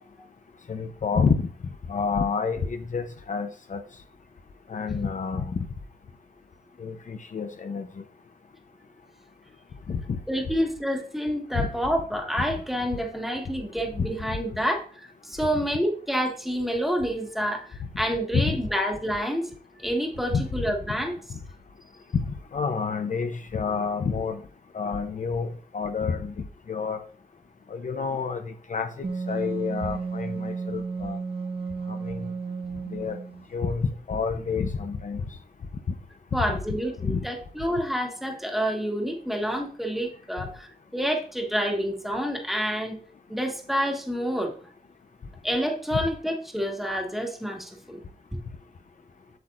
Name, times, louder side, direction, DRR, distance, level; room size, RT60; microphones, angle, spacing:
voice 1, 0.7-1.4 1.9-3.8 4.7-5.7 6.8-7.9 9.9-10.2 11.6-11.7 14.0-14.1 18.3-18.6 20.3-20.5 21.3-21.4 22.1-24.4 24.7-26.3 26.7-27.0 27.7-31.2 31.9-32.3 32.9-33.2 33.5-35.2 36.7-37.2 45.9-46.0, left 5 dB, 50° left, 6 dB, 0.7 m, -28 dB
voice 2, 10.3-19.5 19.8-21.2 36.3-43.0 43.3-44.5 45.4-48.0, equal, ahead, 2 dB, 1.5 m, -28 dB
Wind instrument woodwind instrument, 29.0-33.5, right 4 dB, 35° right, 0.9 m, -33 dB
7.9 x 7.8 x 2.5 m, 0.43 s
wide cardioid pair, 155°, 17 cm